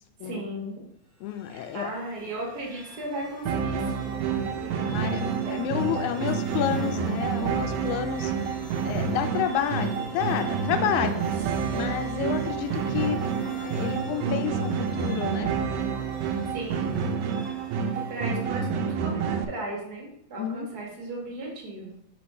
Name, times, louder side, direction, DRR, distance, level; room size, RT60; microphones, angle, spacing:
voice 1, 0.2-0.8 1.5-7.2 13.8-14.5 16.5-17.0 17.9-21.9, right 1 dB, 50° right, -2 dB, 1.3 m, -37 dB
sound 1, 1.1-19.2, equal, 15° right, 1.4 m, -45 dB
voice 2, 1.2-1.9 4.9-8.3 8.8-11.2 11.7-15.5 20.4-20.7, left 10 dB, 85° left, 9 dB, 2.0 m, -30 dB
sound 2, 3.5-19.5, right 6 dB, 80° right, 1.9 m, -29 dB
4.6 x 4.3 x 5.2 m, 0.76 s
omnidirectional pair, 3.4 m